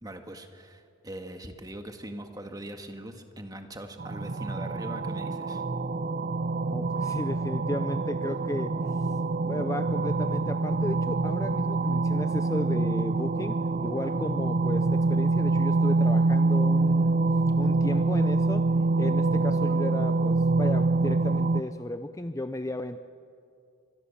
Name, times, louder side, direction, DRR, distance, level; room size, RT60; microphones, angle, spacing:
voice 1, 0.0-5.6, right 1 dB, 20° right, 5 dB, 1.7 m, -41 dB
sound 1, 4.0-21.6, right 3 dB, 45° right, 0.5 m, -25 dB
voice 2, 6.7-8.7 9.0-9.1 9.5-13.6 13.8-17.2 17.6-18.7 19.0-23.0, left 1 dB, 15° left, 9 dB, 0.5 m, -34 dB
25.0 x 22.0 x 7.2 m, 2.5 s
head